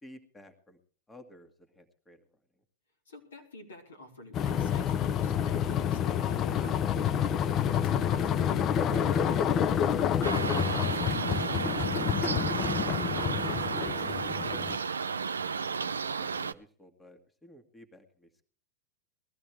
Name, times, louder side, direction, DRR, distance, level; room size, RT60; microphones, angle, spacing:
voice 1, 0.0-0.8 1.1-2.2 15.6-18.5, left 1 dB, 10° left, 6 dB, 1.8 m, -54 dB
voice 2, 3.1-6.8 7.2-10.4 10.7-14.9, left 1 dB, 80° left, 5 dB, 4.1 m, -47 dB
sound 1, 4.3-14.8, left 9 dB, 35° left, 0.7 m, -28 dB
sound 2, 10.2-16.5, right 5 dB, 85° right, 0.7 m, -32 dB
20.5 x 14.5 x 3.4 m, 0.41 s
hypercardioid pair, 100°, 0 cm